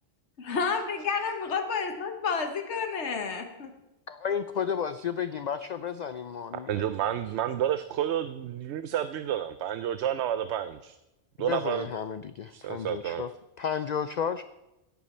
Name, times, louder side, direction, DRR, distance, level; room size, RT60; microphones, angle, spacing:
voice 1, 0.4-3.7, left 5 dB, 80° left, 5 dB, 1.5 m, -30 dB
voice 2, 4.1-6.8 11.4-13.3 13.6-14.4, left 7 dB, 60° left, 11 dB, 0.5 m, -32 dB
voice 3, 6.5-11.0 11.4-11.9 12.5-13.2, right 10 dB, 75° right, 12 dB, 0.9 m, -30 dB
16.5 x 8.4 x 4.3 m, 0.96 s
omnidirectional pair, 1.2 m